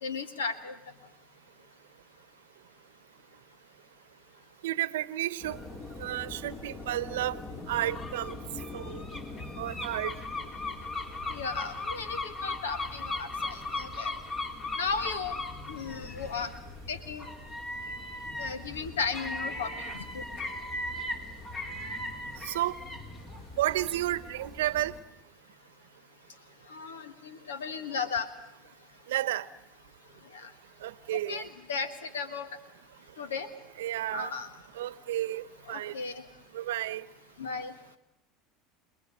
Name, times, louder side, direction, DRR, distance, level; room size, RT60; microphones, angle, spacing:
voice 1, 0.0-0.7 11.3-14.1 14.8-15.4 15.7-16.5 16.9-17.3 18.4-19.8 20.1-20.2 26.7-28.3 30.3-30.5 31.3-32.5 33.2-33.5 34.1-34.5 35.7-36.2 37.4-37.7, left 5 dB, 90° left, 1.5 m, -35 dB
voice 2, 4.6-5.6 6.0-7.4 7.7-8.4 8.7-9.0 9.6-10.1 22.4-22.8 23.6-24.9 29.1-29.5 30.8-31.4 33.8-34.3 34.7-35.9 36.5-37.0, right 14 dB, 80° right, 0.9 m, -31 dB
sound 1, 5.4-25.0, left 2 dB, 40° left, 4.0 m, -38 dB
29.0 x 20.5 x 8.4 m
hypercardioid pair, 85°, 0 cm